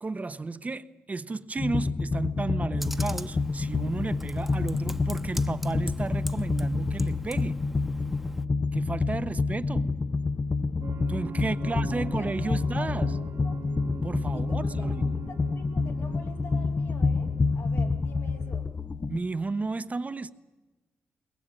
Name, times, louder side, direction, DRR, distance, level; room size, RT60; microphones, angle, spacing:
voice 1, 0.0-7.6 8.7-9.9 11.1-13.2 14.0-15.1 19.1-20.3, right 3 dB, 35° right, 1.0 m, -33 dB
sound 1, 1.6-19.2, left 3 dB, 30° left, 0.7 m, -28 dB
Computer keyboard, 2.8-8.5, right 1 dB, 5° right, 1.1 m, -43 dB
sound 2, 10.8-18.6, right 6 dB, 75° right, 1.9 m, -45 dB
voice 2, 11.4-12.9 13.2-13.6 14.3-18.7, left 4 dB, 75° left, 3.4 m, -46 dB
22.0 x 20.0 x 9.0 m
cardioid pair, 65°, 4 cm